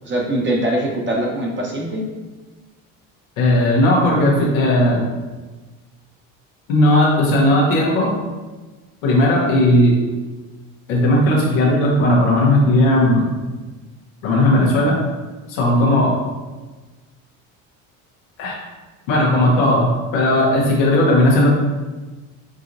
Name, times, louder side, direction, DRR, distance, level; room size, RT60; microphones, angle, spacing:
voice 1, 0.0-2.0, right 1 dB, 30° right, -2 dB, 1.0 m, -22 dB
voice 2, 3.4-5.0 6.7-8.1 9.0-10.0 10.9-13.3 14.2-15.0 15.5-16.1 18.4-18.6 19.1-21.5, left 1 dB, 90° left, -3 dB, 1.3 m, -16 dB
6.2 x 2.9 x 2.6 m, 1.3 s
supercardioid pair, 80°, 38 cm